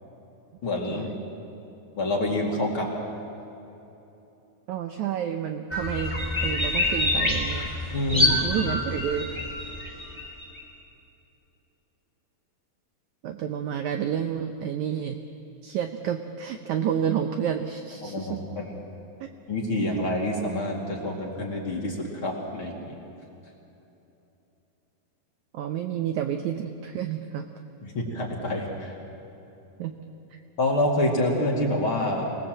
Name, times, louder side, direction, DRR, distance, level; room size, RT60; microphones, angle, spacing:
voice 1, 0.6-1.1 2.0-2.9 7.9-8.3 18.0-18.8 19.5-22.9 27.8-28.9 30.6-32.4, left 1 dB, 40° left, -1 dB, 2.8 m, -27 dB
voice 2, 4.7-6.2 6.4-7.7 8.1-9.3 13.2-15.2 15.6-18.4 19.2-19.3 25.5-27.5 29.8-30.0, right 9 dB, 75° right, 6 dB, 1.8 m, -30 dB
sound 1, 5.7-10.6, left 2 dB, 10° left, 2.7 m, -26 dB
25.5 x 19.0 x 7.6 m, 3.0 s
omnidirectional pair, 4.3 m